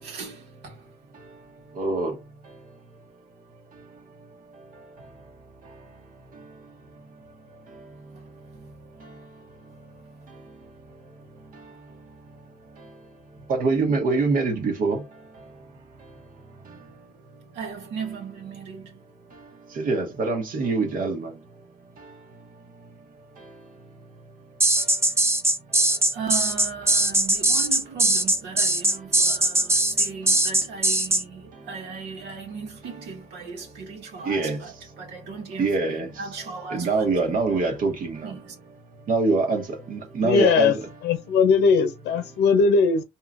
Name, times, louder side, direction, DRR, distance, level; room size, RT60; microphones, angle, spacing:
voice 1, 0.0-0.9 8.1-8.3 17.5-19.0 26.1-37.1 38.2-38.5 40.3-40.5, right 5 dB, 80° right, 1.5 m, -37 dB
voice 2, 1.8-2.1 13.5-15.0 19.8-21.3 34.2-34.6 35.6-36.1 36.7-38.3 39.1-40.8, right 3 dB, 55° right, 1.2 m, -24 dB
sound 1, 24.6-31.2, right 1 dB, 15° right, 0.8 m, -20 dB
voice 3, 40.2-40.7 41.0-43.0, left 5 dB, 85° left, 0.7 m, -19 dB
4.7 x 2.8 x 2.5 m
cardioid pair, 110°, 17 cm